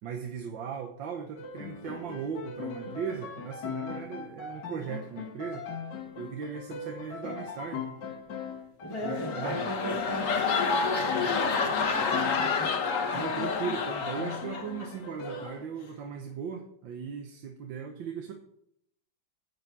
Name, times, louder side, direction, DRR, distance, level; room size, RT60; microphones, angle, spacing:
voice 1, 0.0-5.7 6.2-7.9 9.0-10.0 13.1-18.3, right 7 dB, 85° right, 4 dB, 1.7 m, -38 dB
sound 1, 1.4-15.4, left 6 dB, 70° left, 1.8 m, -40 dB
voice 2, 8.8-12.7, equal, 15° left, -5 dB, 1.5 m, -38 dB
sound 2, 8.9-14.9 15.2-15.6, left 5 dB, 50° left, 1.3 m, -29 dB
10.0 x 8.0 x 4.7 m, 0.72 s
omnidirectional pair, 2.0 m